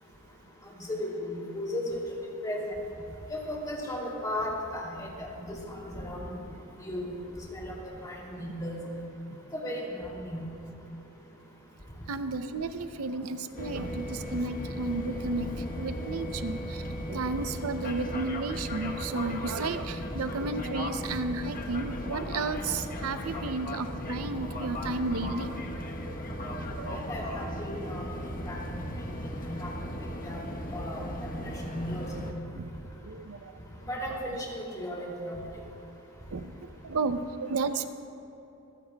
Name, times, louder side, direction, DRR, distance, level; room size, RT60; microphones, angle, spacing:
voice 1, 0.9-2.0 2.4-2.6 3.3-5.1 5.4-6.4 6.8-7.1 7.5-7.8 8.0-8.8 9.5-10.4 26.9-28.1 28.5-28.9 29.5-29.7 30.2-30.4 30.7-31.0 31.3-32.1 33.9-35.4, left 1 dB, 15° left, -3 dB, 2.6 m, -35 dB
voice 2, 12.1-27.0 32.5-32.7 33.0-33.5 34.1-34.2 36.3-37.9, right 3 dB, 75° right, 10 dB, 0.6 m, -33 dB
sound 1, 13.6-32.3, equal, 40° left, 1.1 m, -36 dB
25.0 x 15.0 x 2.3 m, 3.0 s
head